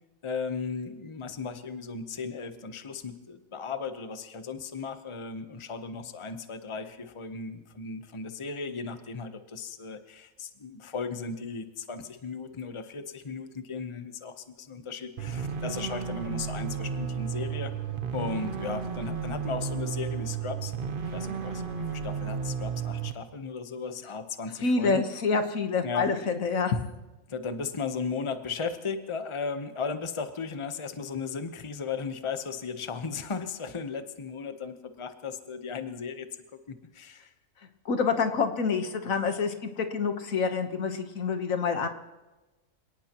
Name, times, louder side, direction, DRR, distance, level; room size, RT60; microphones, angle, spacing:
voice 1, 0.2-17.7 18.1-20.7 21.1-25.0 25.8-26.1 27.3-36.3 36.7-37.3, left 5 dB, 25° left, 8 dB, 0.9 m, -36 dB
sound 1, 15.2-23.1, right 6 dB, 45° right, 1.0 m, -33 dB
voice 2, 24.6-26.8 37.8-41.9, left 4 dB, 80° left, 6 dB, 1.6 m, -27 dB
27.0 x 18.0 x 3.0 m, 1.1 s
omnidirectional pair, 1.4 m